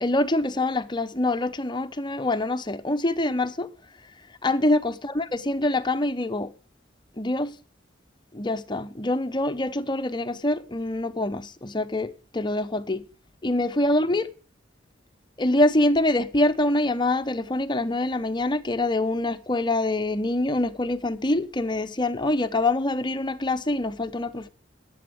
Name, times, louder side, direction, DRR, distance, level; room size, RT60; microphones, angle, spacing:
voice 1, 0.0-3.7 4.4-6.5 7.2-7.6 8.3-13.0 13.4-14.3 15.4-24.5, left 1 dB, 25° left, 0.8 m, -25 dB
11.5 x 7.9 x 6.3 m
head